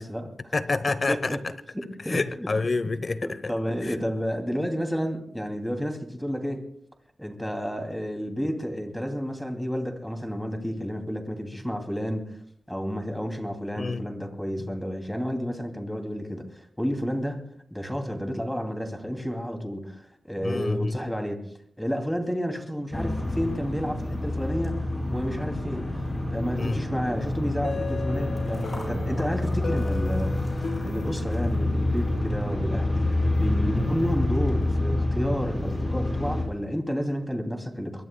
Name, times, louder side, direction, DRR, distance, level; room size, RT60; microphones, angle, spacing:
voice 1, 0.0-0.5 0.9-1.4 1.7-2.5 3.2-6.6 7.2-12.3 12.7-17.4 17.7-21.4 21.8-24.8 25.1-30.3 30.8-33.0 33.4-38.1, equal, 5° left, 2.7 m, -31 dB
voice 2, 0.5-1.4 2.1-3.3 13.8-14.0 20.4-20.9 26.6-26.8, left 3 dB, 45° left, 0.9 m, -27 dB
sound 1, 22.9-36.4, left 1 dB, 20° left, 6.4 m, -27 dB
sound 2, 27.6-32.3, left 4 dB, 80° left, 1.7 m, -38 dB
24.0 x 21.5 x 2.3 m
wide cardioid pair, 95°, 0 cm